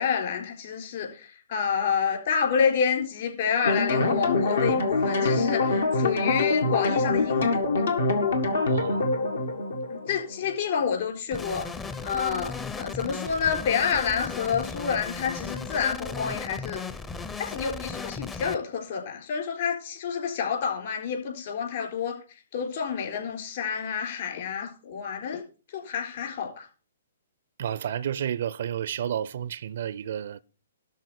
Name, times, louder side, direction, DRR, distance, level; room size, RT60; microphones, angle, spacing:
voice 1, 0.0-7.8 9.9-11.7 12.0-16.8 17.4-22.2 22.5-26.7, left 6 dB, 50° left, 4.2 m, -28 dB
sound 1, 3.6-10.6, left 3 dB, 65° left, 1.9 m, -25 dB
voice 2, 8.6-9.1 27.6-30.4, right 9 dB, 55° right, 0.5 m, -31 dB
sound 2, 11.3-18.6, left 4 dB, 15° left, 0.7 m, -36 dB
12.5 x 4.1 x 8.1 m
figure-of-eight pair, 120°, 0 cm